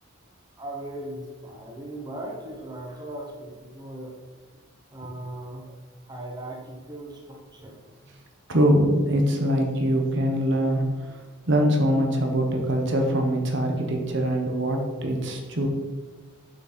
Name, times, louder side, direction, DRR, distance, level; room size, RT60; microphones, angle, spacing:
voice 1, 0.6-4.2 4.9-5.8 6.1-8.2, right 1 dB, 20° right, -1 dB, 1.0 m, -38 dB
voice 2, 8.5-11.2 11.5-15.7, equal, 55° right, 3 dB, 1.1 m, -23 dB
7.5 x 6.3 x 4.4 m, 1.4 s
head